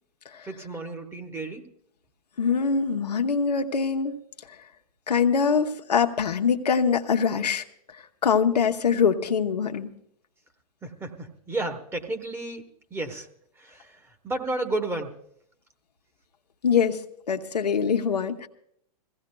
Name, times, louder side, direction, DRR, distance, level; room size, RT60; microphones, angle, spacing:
voice 1, 0.4-1.7 10.8-13.3 13.6-15.2, right 2 dB, 10° right, 5 dB, 1.1 m, -32 dB
voice 2, 2.4-4.2 5.1-7.6 8.2-9.9 16.6-17.0 17.3-18.5, left 6 dB, 90° left, 5 dB, 0.9 m, -23 dB
22.5 x 16.0 x 2.2 m, 0.69 s
hypercardioid pair, 110°, 20 cm